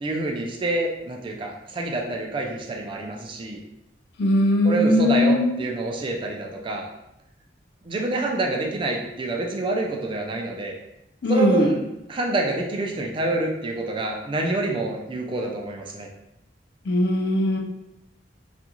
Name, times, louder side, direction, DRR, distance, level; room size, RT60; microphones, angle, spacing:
voice 1, 0.0-3.6 4.6-6.9 7.8-10.8 11.3-11.8 12.1-16.1, right 2 dB, 30° right, 1 dB, 0.3 m, -27 dB
voice 2, 4.2-5.6 11.2-11.7 16.9-17.6, left 1 dB, 65° left, 1 dB, 0.4 m, -20 dB
2.5 x 2.3 x 2.9 m, 0.87 s
head